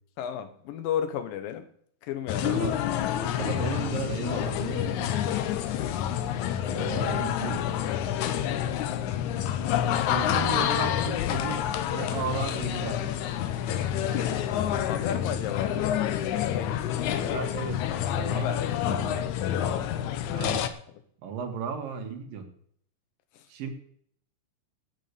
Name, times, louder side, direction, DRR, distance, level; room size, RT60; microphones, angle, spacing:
voice 1, 0.2-1.7 2.0-2.6 14.8-16.1 16.5-17.0 18.3-18.6 19.2-19.8 20.4-20.6 23.3-23.5, left 9 dB, 90° left, 11 dB, 2.8 m, -34 dB
sound 1, 2.3-20.7, left 10 dB, 75° left, 2.0 m, -28 dB
voice 2, 2.4-2.7 3.4-5.1 6.7-7.6 10.1-13.0 17.2-17.8 18.1-18.5 18.9-19.2 20.3-20.7 21.2-22.5 23.5-23.7, right 5 dB, 80° right, 4 dB, 3.5 m, -34 dB
9.2 x 8.6 x 8.2 m, 0.64 s
omnidirectional pair, 4.0 m